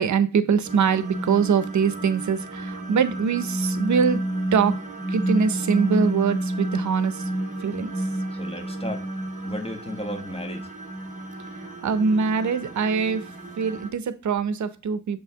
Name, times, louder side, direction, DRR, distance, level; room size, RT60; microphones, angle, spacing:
voice 1, 0.0-4.2 4.5-4.8 5.1-7.2 7.6-7.9 11.8-13.2 13.6-15.2, right 6 dB, 75° right, 0.6 m, -23 dB
sound 1, 0.6-13.9, right 1 dB, 25° right, 1.6 m, -30 dB
voice 2, 8.3-9.1 9.4-10.7, left 1 dB, 20° left, 1.1 m, -34 dB
6.8 x 5.4 x 2.8 m
wide cardioid pair, 115°, 29 cm